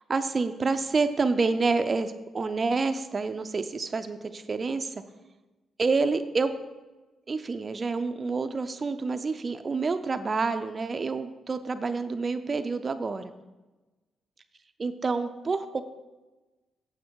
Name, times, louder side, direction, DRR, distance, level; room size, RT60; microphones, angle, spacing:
voice 1, 0.1-5.0 5.8-6.5 7.3-13.3 14.8-15.8, right 4 dB, 25° right, 9 dB, 0.4 m, -28 dB
8.5 x 7.3 x 4.6 m, 1.1 s
wide cardioid pair, 165°, 0 cm